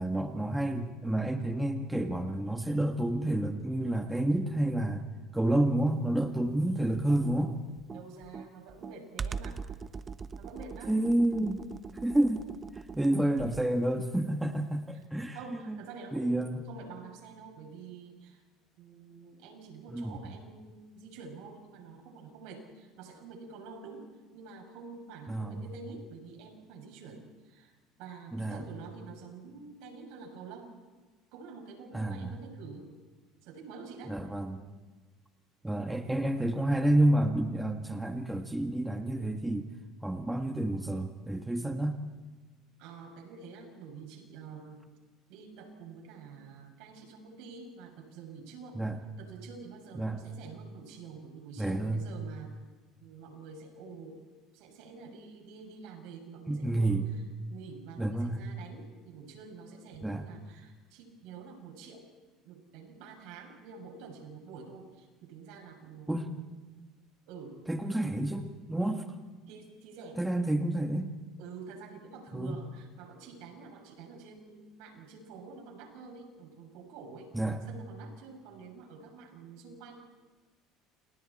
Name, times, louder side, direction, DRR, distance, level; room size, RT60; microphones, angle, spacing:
voice 1, 0.0-5.1 5.3-7.5 10.9-11.6 12.0-12.5 12.7-15.8 16.1-16.6 19.9-20.2 25.3-25.6 28.3-28.6 31.9-32.3 34.1-34.6 35.6-39.7 40.0-42.0 48.7-49.0 49.9-50.2 51.6-52.1 56.5-57.1 58.0-58.5 60.0-60.2 66.1-66.4 67.7-69.0 70.2-71.1 72.3-72.6 77.3-77.6, right 1 dB, 5° right, 5 dB, 1.7 m, -29 dB
Computer keyboard, 6.9-13.8, right 5 dB, 30° right, 1.0 m, -42 dB
voice 2, 7.9-9.6 10.4-11.0 13.0-13.1 15.3-18.4 18.8-27.7 28.0-30.7 31.3-32.9 33.4-34.2 42.8-44.9 45.3-48.8 49.2-52.6 53.0-54.3 54.5-57.2 57.5-62.1 62.4-66.5 67.3-67.6 69.5-70.2 70.5-70.6 71.4-77.3 77.7-79.9, right 5 dB, 75° right, 2 dB, 7.0 m, -48 dB
29.5 x 29.0 x 4.4 m, 1.3 s
supercardioid pair, 110°, 0 cm